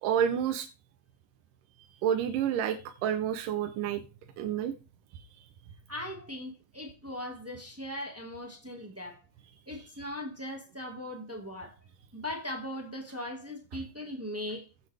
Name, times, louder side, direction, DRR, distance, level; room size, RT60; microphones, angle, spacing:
voice 1, 0.0-0.7 2.0-4.0 4.4-4.7 9.8-10.1, right 9 dB, 80° right, 2.4 m, -29 dB
voice 2, 5.9-9.2 9.7-11.8 12.1-14.7, left 1 dB, 10° right, 0.6 m, -39 dB
15.0 x 7.9 x 3.4 m
omnidirectional pair, 3.7 m